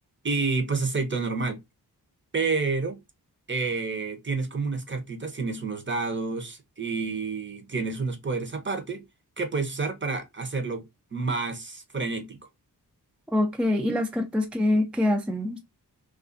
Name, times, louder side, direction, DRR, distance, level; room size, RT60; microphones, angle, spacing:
voice 1, 0.2-1.6 2.3-3.0 3.5-9.0 9.4-10.8 11.1-12.4, right 4 dB, 30° right, 0.7 m, -29 dB
voice 2, 13.3-15.6, left 1 dB, 5° right, 0.4 m, -25 dB
2.4 x 2.3 x 2.5 m
cardioid pair, 50°, 40 cm